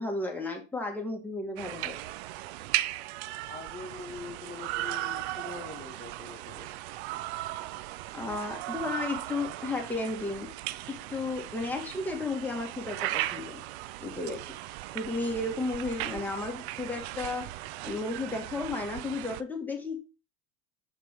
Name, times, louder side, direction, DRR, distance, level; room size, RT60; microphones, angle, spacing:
voice 1, 0.0-1.9 8.1-10.5 10.9-13.6 14.0-14.5 14.9-17.5 17.8-20.0, left 2 dB, 5° left, 1 dB, 1.9 m, -33 dB
sound 1, 1.6-19.4, right 15 dB, 70° right, 0.5 m, -37 dB
voice 2, 3.5-6.7 15.2-15.5, left 4 dB, 25° left, 4 dB, 1.4 m, -44 dB
5.9 x 3.7 x 4.6 m, 0.31 s
hypercardioid pair, 80°, 34 cm